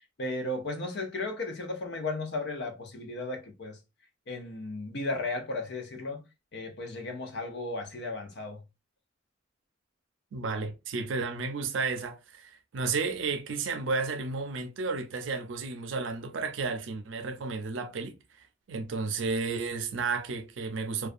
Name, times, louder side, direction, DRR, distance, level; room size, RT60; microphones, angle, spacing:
voice 1, 0.2-3.8 4.3-6.2 6.5-8.6, left 2 dB, 60° left, 0.6 m, -35 dB
voice 2, 10.3-18.1 18.7-21.1, right 4 dB, 75° right, 0.5 m, -32 dB
2.4 x 2.3 x 2.5 m
head